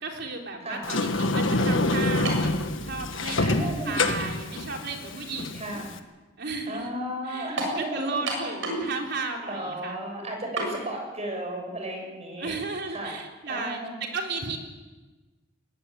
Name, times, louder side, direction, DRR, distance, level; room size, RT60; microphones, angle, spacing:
voice 1, 0.0-2.5 2.8-5.8 6.4-6.9 7.3-10.0 12.4-13.8 14.1-14.6, right 3 dB, 60° right, 2 dB, 3.7 m, -34 dB
Sliding door, 0.8-6.0, left 2 dB, 80° left, 1.6 m, -26 dB
sound 1, 2.2-2.5 3.4-3.5 7.6-7.8 8.3-8.9 9.2-9.3 10.6-10.7, right 2 dB, 75° right, 7.2 m, -30 dB
voice 2, 3.4-4.0 5.5-5.9 6.7-8.5 9.5-12.5 12.8-13.2 13.5-14.0, right 1 dB, 35° right, 2 dB, 6.9 m, -34 dB
21.5 x 17.5 x 9.2 m, 1.2 s
head